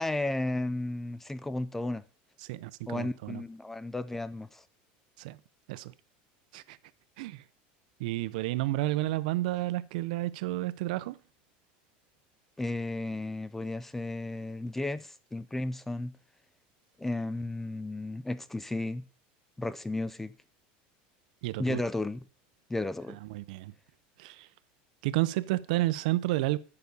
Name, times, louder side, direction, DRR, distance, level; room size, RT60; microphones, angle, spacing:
voice 1, 0.0-2.0 2.9-4.6 12.6-16.1 17.0-19.0 19.6-20.3 21.6-22.2 22.7-23.2, left 2 dB, 5° left, 0.4 m, -33 dB
voice 2, 2.4-3.4 5.2-5.4 5.7-5.9 6.5-6.8 7.2-7.4 8.0-11.2 21.4-21.8 23.2-23.7 24.2-24.5 25.0-26.6, right 17 dB, 75° right, 0.6 m, -31 dB
9.5 x 6.8 x 5.3 m
supercardioid pair, 155°, 4 cm